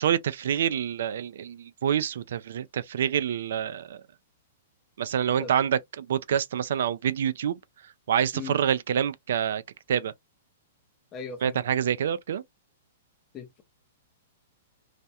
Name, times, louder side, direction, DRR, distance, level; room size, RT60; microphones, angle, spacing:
voice 1, 0.0-4.0 5.0-7.6 8.1-9.6 9.9-10.1 11.4-12.4, right 9 dB, 65° right, 0.3 m, -27 dB
voice 2, 11.1-11.6 13.3-13.6, left 6 dB, 20° left, 0.5 m, -38 dB
2.3 x 2.1 x 2.7 m
hypercardioid pair, 165°, 0 cm